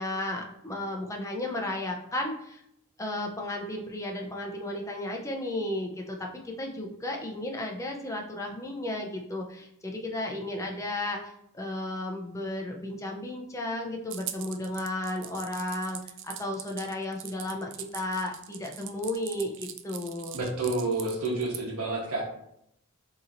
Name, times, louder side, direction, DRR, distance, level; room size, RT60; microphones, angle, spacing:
voice 1, 0.0-2.6 3.0-19.5 19.8-20.4, left 1 dB, 15° left, 1 dB, 0.6 m, -34 dB
sound 1, 14.1-21.6, right 11 dB, 55° right, 0.4 m, -41 dB
voice 2, 20.3-22.2, right 2 dB, 80° right, -1 dB, 1.1 m, -29 dB
7.0 x 2.9 x 2.6 m, 0.75 s
head